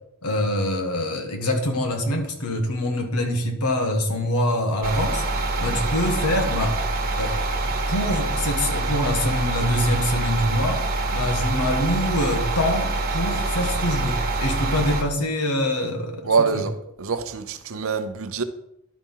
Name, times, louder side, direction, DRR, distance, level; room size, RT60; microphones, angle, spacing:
voice 1, 0.2-6.7 7.2-7.3 7.9-10.8 11.1-16.6, left 1 dB, 90° left, 1.6 m, -25 dB
sound 1, 4.8-15.0, right 2 dB, 45° right, 1.3 m, -25 dB
voice 2, 5.6-5.9 16.2-16.7 17.0-18.4, right 5 dB, 65° right, 0.7 m, -25 dB
11.0 x 4.3 x 5.5 m
head